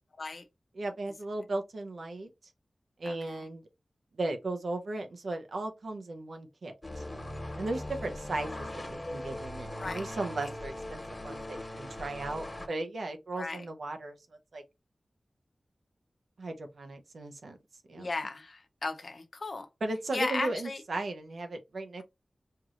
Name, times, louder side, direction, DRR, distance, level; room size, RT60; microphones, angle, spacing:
voice 1, 0.7-2.3 3.0-3.6 4.2-7.0 7.6-14.2 14.5-14.6 16.4-17.6 17.9-18.1 19.8-22.0, right 2 dB, 85° right, 0.8 m, -36 dB
voice 2, 3.0-3.4 8.5-8.6 9.8-10.0 13.4-13.6 18.0-19.7 20.1-20.8, left 3 dB, 70° left, 0.8 m, -36 dB
sound 1, 6.8-12.7, left 1 dB, 40° left, 1.3 m, -40 dB
4.6 x 2.5 x 3.0 m
cardioid pair, 40°, 0 cm